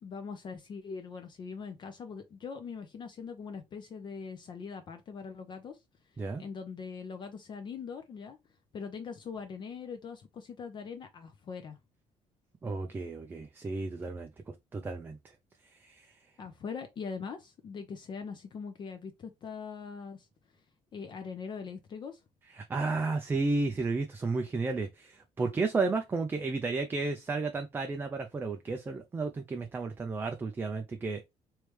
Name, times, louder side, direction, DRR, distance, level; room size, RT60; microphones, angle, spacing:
voice 1, 0.0-5.8 6.4-8.4 8.7-11.8 16.4-20.3 20.9-22.2, left 5 dB, 35° left, 0.5 m, -42 dB
voice 2, 12.6-14.3 14.7-15.2 15.8-16.1 22.5-31.2, right 3 dB, 15° right, 0.4 m, -32 dB
3.2 x 3.1 x 3.2 m
cardioid pair, 150°, 13 cm